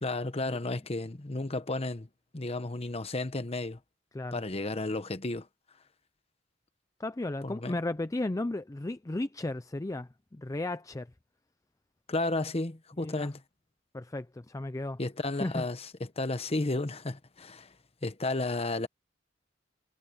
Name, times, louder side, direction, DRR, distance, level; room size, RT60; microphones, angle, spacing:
voice 1, 0.0-2.1 2.3-3.8 4.3-5.5 7.4-7.8 12.1-13.4 15.0-17.7 18.0-18.9, left 2 dB, 35° left, 1.1 m, -33 dB
voice 2, 7.0-11.1 13.0-13.3 13.9-15.0 15.4-15.6, left 2 dB, 20° left, 0.5 m, -34 dB
head